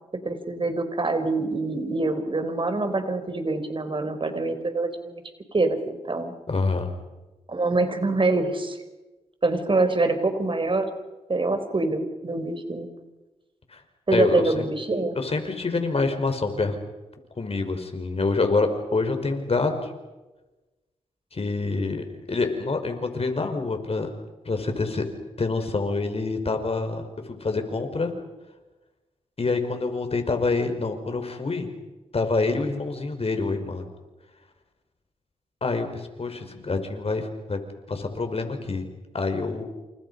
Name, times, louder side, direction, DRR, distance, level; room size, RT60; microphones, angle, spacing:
voice 1, 0.2-5.2 5.5-6.3 7.5-8.8 9.4-10.9 11.3-12.9 14.1-15.2, right 3 dB, 40° right, 8 dB, 4.5 m, -25 dB
voice 2, 6.5-6.9 13.7-13.8 14.1-14.6 15.2-16.8 17.4-19.9 21.3-24.1 24.4-25.0 25.4-28.1 29.4-31.7 32.1-33.9 35.6-37.6 37.9-38.9 39.1-39.6, left 3 dB, 50° left, 6 dB, 5.1 m, -26 dB
29.0 x 28.5 x 5.6 m, 1.1 s
cardioid pair, 50°, 13 cm